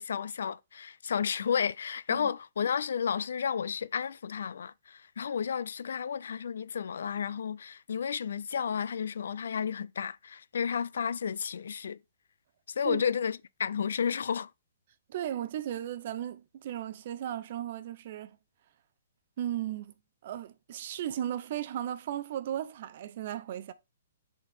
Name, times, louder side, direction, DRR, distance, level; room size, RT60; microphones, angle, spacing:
voice 1, 0.0-12.0 12.7-14.5, left 7 dB, 75° left, 0.4 m, -32 dB
voice 2, 15.1-18.4 19.4-19.9 20.2-23.7, right 11 dB, 45° right, 0.6 m, -36 dB
7.8 x 4.3 x 3.5 m
hypercardioid pair, 165°, 0 cm